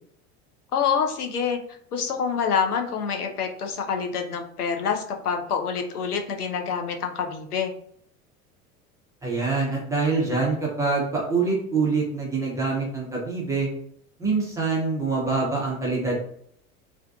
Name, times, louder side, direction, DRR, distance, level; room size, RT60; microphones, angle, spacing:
voice 1, 0.7-1.6 1.9-7.7, left 6 dB, 80° left, 4 dB, 0.5 m, -26 dB
voice 2, 9.2-13.7 14.2-16.2, right 4 dB, 10° right, -4 dB, 0.3 m, -25 dB
2.5 x 2.2 x 2.3 m, 0.65 s
figure-of-eight pair, 75°, 45 cm